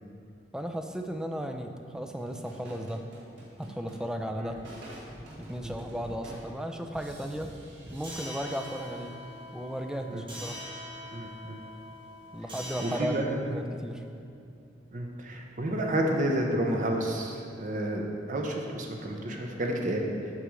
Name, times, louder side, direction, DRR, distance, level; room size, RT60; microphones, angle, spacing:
voice 1, 0.5-3.0 3.6-4.6 5.4-7.5 7.9-9.1 9.5-10.6 12.3-14.0, equal, 5° right, 5 dB, 0.3 m, -35 dB
sound 1, 2.1-9.5, right 1 dB, 80° right, 1.6 m, -48 dB
sound 2, 8.0-13.1, equal, 25° right, 1.2 m, -43 dB
voice 2, 11.1-11.6 12.8-13.6 14.9-20.3, right 1 dB, 45° right, 1 dB, 0.7 m, -30 dB
8.1 x 3.1 x 6.1 m, 2.6 s
head